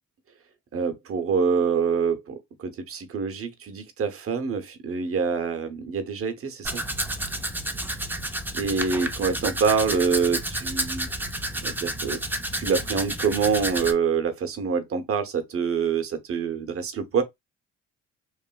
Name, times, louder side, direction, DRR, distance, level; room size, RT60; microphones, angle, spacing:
voice 1, 0.7-6.8 8.5-11.1 11.6-12.2 12.6-17.2, right 5 dB, 50° right, 0.8 m, -26 dB
Domestic sounds home sounds, 6.6-13.9, right 1 dB, 5° right, 0.4 m, -30 dB
3.1 x 2.5 x 2.2 m
cardioid pair, 90°, 30 cm